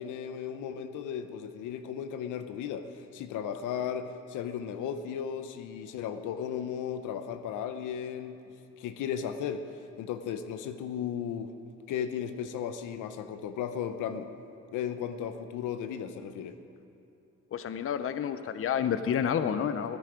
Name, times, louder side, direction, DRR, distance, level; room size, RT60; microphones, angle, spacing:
voice 1, 0.0-8.4 8.8-11.5 11.9-14.3 14.7-16.6, left 8 dB, 85° left, 9 dB, 0.7 m, -35 dB
voice 2, 17.5-20.0, left 8 dB, 45° left, 11 dB, 0.6 m, -29 dB
16.0 x 10.0 x 5.0 m, 2.7 s
cardioid pair, 90°, 30 cm